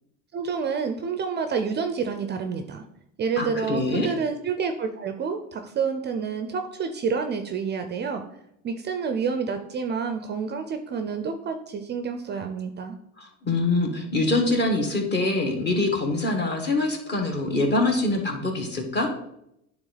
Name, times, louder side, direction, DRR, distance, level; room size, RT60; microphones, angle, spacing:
voice 1, 0.3-2.8 3.2-8.2 8.6-13.0, right 5 dB, 30° right, 7 dB, 0.4 m, -28 dB
voice 2, 3.4-4.1 13.2-19.1, left 2 dB, 30° left, 3 dB, 1.4 m, -24 dB
9.1 x 3.5 x 3.9 m, 0.79 s
cardioid pair, 125°, 35 cm